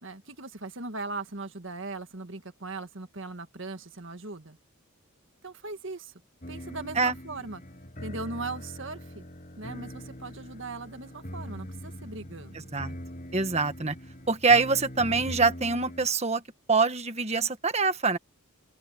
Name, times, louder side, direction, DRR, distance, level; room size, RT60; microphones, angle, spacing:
voice 1, 0.0-4.6 5.4-6.1 6.5-7.6 8.0-9.2 9.6-12.7, right 3 dB, 55° right, 1.9 m, -39 dB
sound 1, 6.4-16.1, equal, 35° left, 7.6 m, -42 dB
voice 2, 13.3-13.9 14.3-16.4 16.7-18.2, right 4 dB, 30° right, 1.5 m, -24 dB
open air
head